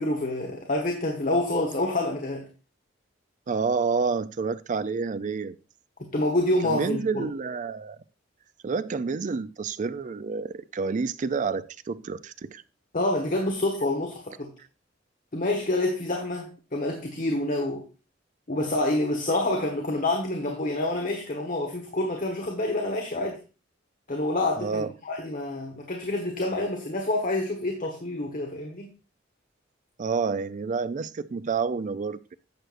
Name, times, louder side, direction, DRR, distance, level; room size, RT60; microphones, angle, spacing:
voice 1, 0.0-2.5 6.1-7.3 12.9-14.5 15.3-17.8 18.5-23.4 24.1-28.9, left 2 dB, 45° left, 1.3 m, -27 dB
voice 2, 3.5-5.6 6.6-8.0 8.6-12.6 24.6-24.9 30.0-32.4, right 5 dB, 40° right, 0.4 m, -29 dB
11.0 x 7.9 x 2.6 m
head